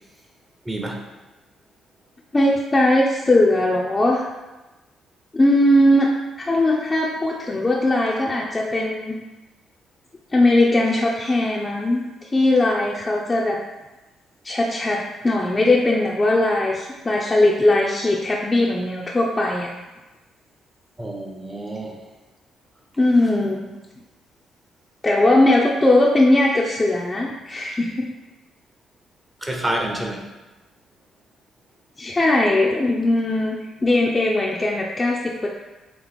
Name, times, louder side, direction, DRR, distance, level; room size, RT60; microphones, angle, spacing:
voice 1, 0.7-1.0 21.0-22.0 29.4-30.3, right 1 dB, 15° right, 1 dB, 0.6 m, -28 dB
voice 2, 2.3-4.2 5.3-6.1 6.4-9.2 10.3-13.6 14.4-19.7 23.0-23.7 25.0-28.1 32.0-35.5, left 1 dB, 25° left, -2 dB, 0.4 m, -19 dB
3.0 x 2.9 x 4.1 m, 1.1 s
cardioid pair, 90°, 0 cm